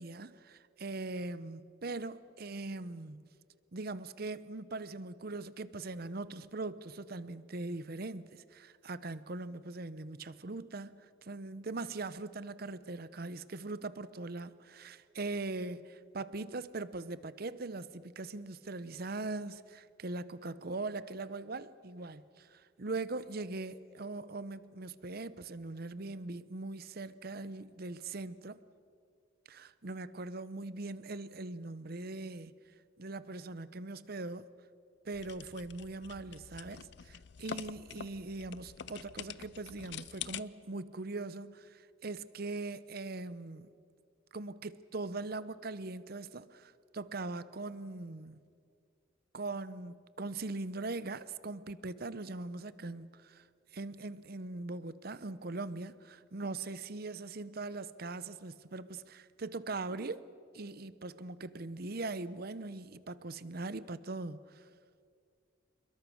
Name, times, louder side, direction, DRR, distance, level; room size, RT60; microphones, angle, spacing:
voice 1, 0.0-3.2 3.7-28.6 29.5-32.6 33.0-34.5 35.0-43.7 44.3-48.4 49.3-53.4 53.7-60.2 60.5-64.7, right 3 dB, 50° right, 0.8 m, -41 dB
sound 1, 35.1-40.4, left 8 dB, 60° left, 0.6 m, -46 dB
27.5 x 21.5 x 6.4 m
head